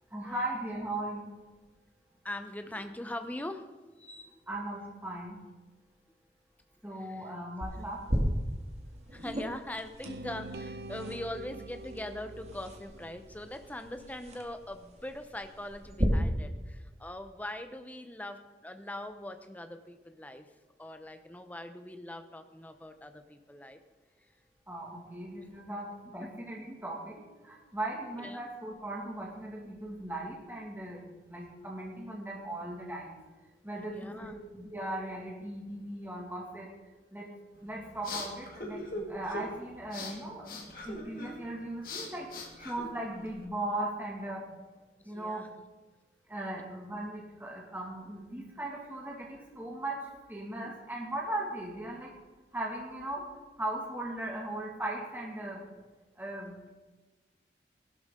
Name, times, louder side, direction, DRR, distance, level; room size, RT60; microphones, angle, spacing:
voice 1, 0.1-1.3 4.5-5.4 6.8-8.0 24.7-27.2 27.4-33.2 33.6-36.7 37.1-37.3 37.6-44.5 45.1-45.5 46.3-50.0 50.3-52.1 52.5-53.3 53.6-55.6 56.2-56.7, right 1 dB, 10° right, -3 dB, 2.2 m, -38 dB
voice 2, 2.2-4.4 7.0-7.3 7.8-7.9 9.1-20.5 20.8-23.8 26.2-26.3 28.2-28.4 33.9-34.3 45.0-45.5 50.6-50.8, left 1 dB, 10° left, 7 dB, 0.8 m, -42 dB
sound 1, 7.6-16.0, equal, 40° right, 1.9 m, -37 dB
sound 2, 10.0-14.1, right 2 dB, 65° right, 0.6 m, -45 dB
sound 3, 37.5-43.4, left 2 dB, 55° left, 2.2 m, -42 dB
16.5 x 12.0 x 3.8 m, 1.2 s
head